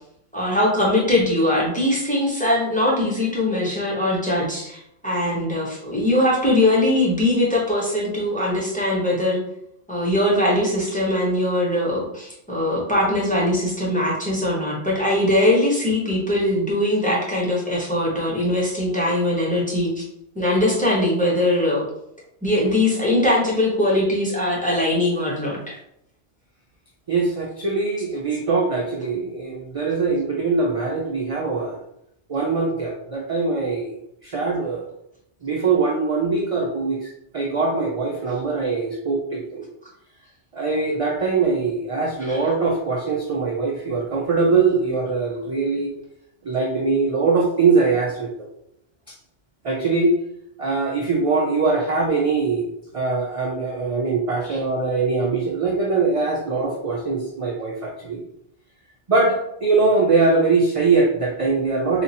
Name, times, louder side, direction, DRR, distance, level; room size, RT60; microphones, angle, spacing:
voice 1, 0.3-9.4 9.9-20.0 20.3-21.9 22.4-25.8 42.2-42.5 54.5-54.6, left 1 dB, 5° left, -5 dB, 0.9 m, -21 dB
voice 2, 27.1-31.8 32.3-34.8 35.4-39.7 40.5-45.9 46.4-48.5 49.6-50.1 50.6-58.2 59.1-62.0, right 4 dB, 45° right, -2 dB, 0.4 m, -22 dB
2.9 x 2.4 x 4.0 m, 0.75 s
omnidirectional pair, 1.2 m